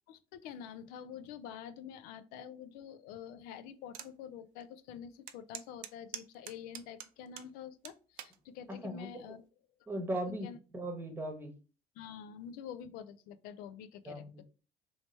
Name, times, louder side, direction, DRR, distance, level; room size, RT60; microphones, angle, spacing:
voice 1, 0.1-9.4 10.4-10.6 12.0-14.4, left 8 dB, 85° left, 12 dB, 0.4 m, -47 dB
sound 1, 3.9-4.1 4.6-4.7 5.3-7.5 7.8-8.4 9.1-9.4, right 11 dB, 70° right, 0.5 m, -45 dB
voice 2, 8.8-9.4 9.9-10.5 10.7-11.5 14.0-14.4, right 1 dB, 15° right, 3 dB, 1.0 m, -38 dB
3.1 x 2.9 x 3.1 m, 0.34 s
cardioid pair, 125°, 15 cm